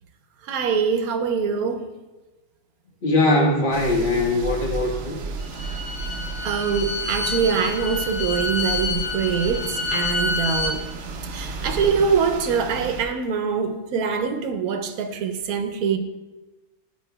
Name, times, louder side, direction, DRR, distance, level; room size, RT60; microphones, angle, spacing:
voice 1, 0.5-1.8 6.4-10.8 11.3-16.0, right 6 dB, 85° right, 7 dB, 1.1 m, -24 dB
voice 2, 3.0-5.2, left 2 dB, 40° left, 1 dB, 1.0 m, -21 dB
sound 1, 3.7-13.1, right 3 dB, 65° right, 0.8 m, -33 dB
Bowed string instrument, 5.4-10.8, left 3 dB, 85° left, 1.6 m, -28 dB
9.8 x 4.8 x 2.2 m, 1.1 s
omnidirectional pair, 1.5 m